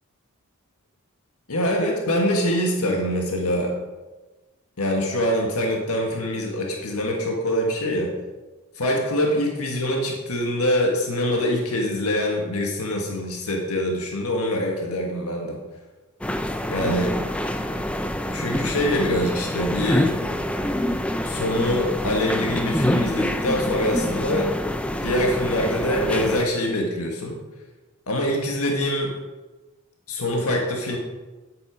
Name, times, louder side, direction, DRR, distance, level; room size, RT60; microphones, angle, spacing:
voice 1, 1.5-3.8 4.8-8.2 8.7-15.6 16.7-17.3 18.3-20.2 21.2-24.5 25.0-27.4 28.1-29.2 30.1-31.0, left 1 dB, 85° left, 1 dB, 1.6 m, -24 dB
sound 1, 16.2-26.5, left 1 dB, 5° left, 0.4 m, -26 dB
9.8 x 8.3 x 5.0 m, 1.2 s
head